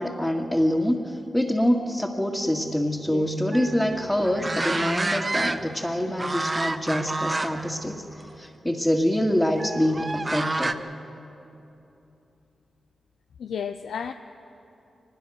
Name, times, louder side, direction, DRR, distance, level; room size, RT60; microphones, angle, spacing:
voice 1, 0.0-8.0 8.4-10.7, equal, 10° left, -4 dB, 2.0 m, -25 dB
sound 1, 3.5-5.9 6.2-7.7 8.1-8.3 9.6-10.7, right 2 dB, 30° right, 1.0 m, -29 dB
voice 2, 13.4-14.1, left 7 dB, 85° left, 7 dB, 0.5 m, -32 dB
23.5 x 20.5 x 6.5 m, 2.9 s
cardioid pair, 45°, 0 cm